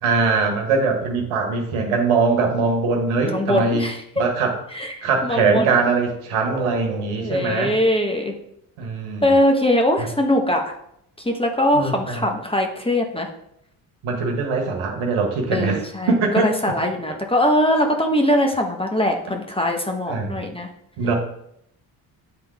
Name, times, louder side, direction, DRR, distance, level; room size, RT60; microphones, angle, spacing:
voice 1, 0.0-3.9 4.2-4.5 5.0-7.7 8.8-9.2 11.7-12.2 14.0-15.8 16.1-16.5 20.1-20.4 21.0-21.1, right 4 dB, 70° right, 3 dB, 1.5 m, -21 dB
voice 2, 3.2-4.0 4.7-5.8 7.2-8.3 9.2-10.7 11.2-13.3 15.5-20.7, left 1 dB, 10° left, 3 dB, 1.1 m, -21 dB
8.9 x 3.7 x 3.5 m, 0.74 s
supercardioid pair, 55°, 50 cm